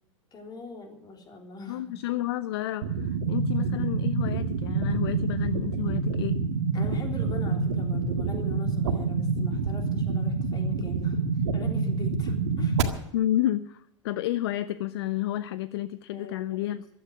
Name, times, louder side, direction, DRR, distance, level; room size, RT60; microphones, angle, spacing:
voice 1, 0.3-2.0 6.7-12.8 16.1-16.6, left 3 dB, 25° left, 3 dB, 3.5 m, -42 dB
voice 2, 1.7-6.4 13.1-16.8, left 13 dB, 55° left, 16 dB, 0.6 m, -30 dB
sound 1, 2.8-12.8, right 4 dB, 65° right, 1.8 m, -27 dB
15.0 x 12.5 x 6.3 m, 0.82 s
figure-of-eight pair, 90°, 16 cm